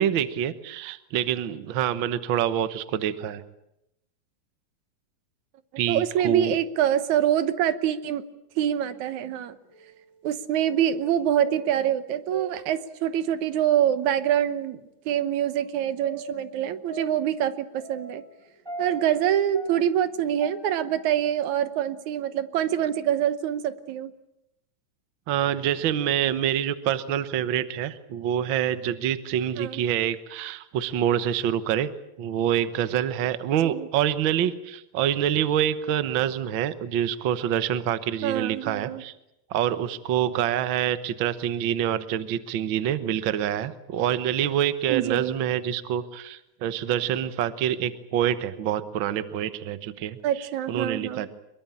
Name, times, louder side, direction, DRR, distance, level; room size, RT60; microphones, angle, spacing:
voice 1, 0.0-3.4 5.8-6.6 25.3-31.9 32.2-39.1 39.5-50.2 50.7-51.3, right 10 dB, 55° right, 13 dB, 1.4 m, -26 dB
voice 2, 5.9-8.2 8.6-9.6 10.2-18.2 18.8-24.1 29.6-29.8 33.6-33.9 38.2-39.0 44.9-45.4 50.2-51.3, right 10 dB, 80° right, 13 dB, 2.4 m, -25 dB
sound 1, 9.7-10.2 10.5-13.3 14.0-14.1 15.1-21.1, right 3 dB, 10° right, 4.9 m, -41 dB
24.5 x 22.0 x 8.8 m, 0.84 s
omnidirectional pair, 3.3 m